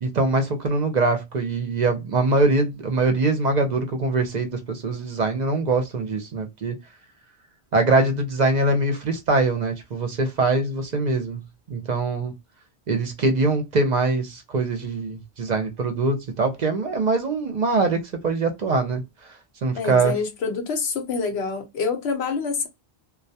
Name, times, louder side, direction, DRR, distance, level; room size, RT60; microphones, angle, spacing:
voice 1, 0.0-6.7 7.7-11.4 11.7-12.3 12.9-19.0 19.6-20.1, right 3 dB, 55° right, 0.6 m, -23 dB
voice 2, 19.8-22.7, left 5 dB, 90° left, 1.0 m, -26 dB
2.2 x 2.1 x 2.7 m
omnidirectional pair, 1.0 m